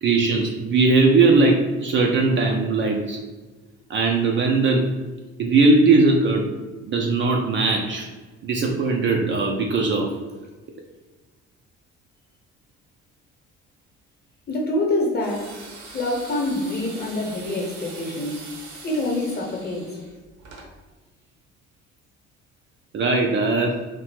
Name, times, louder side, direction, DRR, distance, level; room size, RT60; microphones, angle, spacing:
voice 1, 0.0-3.2 3.9-5.0 5.4-6.5 6.8-8.1 8.4-10.1 22.9-23.8, right 3 dB, 35° right, 1 dB, 0.4 m, -19 dB
voice 2, 14.5-15.6 15.9-18.6 18.8-20.0, left 1 dB, 30° left, -1 dB, 0.9 m, -26 dB
sound 1, 15.2-20.7, right 3 dB, 60° right, 0.8 m, -42 dB
2.8 x 2.1 x 3.0 m, 1.3 s
figure-of-eight pair, 50°, 34 cm